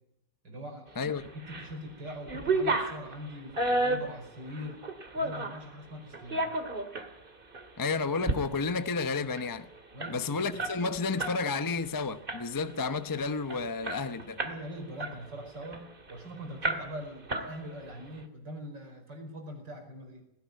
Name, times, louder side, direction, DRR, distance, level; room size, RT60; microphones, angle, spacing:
voice 1, 0.4-1.1 1.3-4.8 5.1-6.5 9.9-10.6 14.4-20.2, equal, 75° right, 5.7 m, -42 dB
voice 2, 1.0-1.3 7.8-9.7 10.1-14.4, left 4 dB, 20° left, 0.6 m, -31 dB
sound 1, 1.2-1.7 2.0-5.6 6.1-7.1 7.5-7.7 8.1-8.4 8.7-8.8 9.1-11.4 11.7-11.9 12.3-12.7 13.2-13.3 13.5-14.6 15.0-16.2 16.6-17.0 17.3-17.9, right 2 dB, 30° right, 2.2 m, -32 dB
19.5 x 17.0 x 9.5 m
omnidirectional pair, 1.9 m